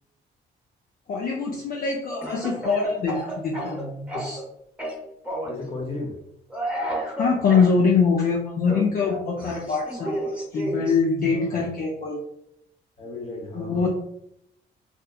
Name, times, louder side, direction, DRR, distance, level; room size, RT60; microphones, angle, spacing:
voice 1, 1.1-4.4 7.2-12.2 13.5-13.9, left 5 dB, 50° left, -1 dB, 0.5 m, -24 dB
Speech / Cough, 2.2-4.5 4.8-5.6 6.5-7.7 8.7-11.0, right 1 dB, 5° right, 0.8 m, -31 dB
voice 2, 5.4-6.1 11.3-11.6 13.0-13.9, left 2 dB, 30° left, 0 dB, 0.9 m, -35 dB
2.8 x 2.2 x 2.2 m, 0.77 s
cardioid pair, 90°, 20 cm